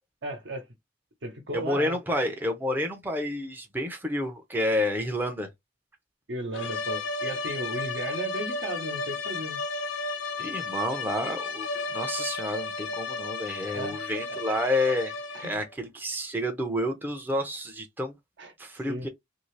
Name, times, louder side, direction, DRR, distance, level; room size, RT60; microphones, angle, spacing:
voice 1, 0.2-0.6 1.2-2.0 6.3-9.6 13.7-14.0 14.3-14.4 15.3-15.6 18.4-18.5 18.9-19.1, right 1 dB, 65° right, 1.0 m, -35 dB
voice 2, 1.5-5.5 10.4-11.7 11.9-15.1 15.4-18.1 18.6-19.1, left 1 dB, 10° right, 0.6 m, -29 dB
sound 1, 6.5-15.7, left 3 dB, 75° left, 0.7 m, -33 dB
2.8 x 2.7 x 3.1 m
head